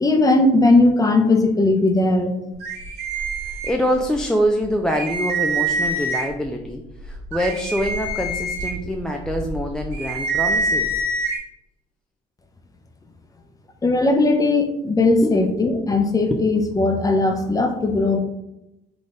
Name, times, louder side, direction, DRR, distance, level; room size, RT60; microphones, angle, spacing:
voice 1, 0.0-2.3 13.8-18.2, left 2 dB, 20° left, 4 dB, 0.7 m, -18 dB
sound 1, 2.6-4.2 4.6-4.7 4.9-6.5 7.0-11.4, right 2 dB, 85° right, 1.1 m, -25 dB
voice 2, 3.5-11.1 15.2-16.0 16.3-16.4, equal, 5° left, 2 dB, 0.3 m, -25 dB
3.9 x 3.4 x 3.8 m, 0.91 s
cardioid pair, 110°, 17 cm